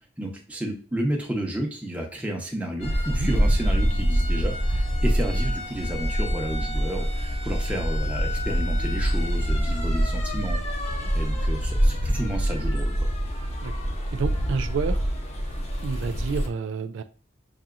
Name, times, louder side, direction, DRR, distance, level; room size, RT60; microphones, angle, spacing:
voice 1, 0.2-10.6 11.1-13.1, right 1 dB, 10° right, 0.8 m, -31 dB
sound 1, 2.8-16.5, equal, 35° left, 0.7 m, -25 dB
voice 2, 14.1-15.1 15.8-17.0, right 5 dB, 80° right, 0.3 m, -30 dB
5.7 x 2.7 x 2.5 m
head